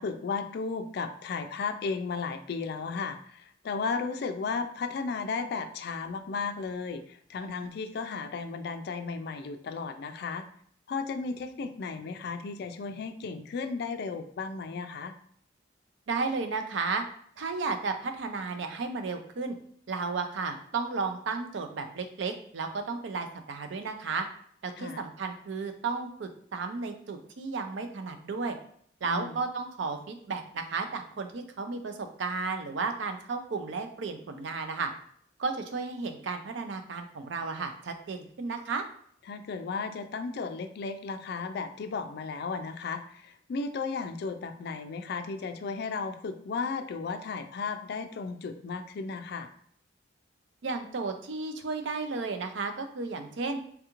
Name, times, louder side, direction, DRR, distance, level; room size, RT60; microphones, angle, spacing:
voice 1, 0.0-10.4 10.9-15.1 24.8-25.0 29.0-29.4 39.3-49.5, left 4 dB, 55° left, 8 dB, 0.3 m, -34 dB
voice 2, 16.1-17.0 17.4-19.6 19.9-24.2 24.6-28.6 29.0-34.9 35.4-38.8 50.6-53.6, right 4 dB, 70° right, 6 dB, 0.5 m, -33 dB
3.4 x 2.4 x 2.9 m, 0.63 s
head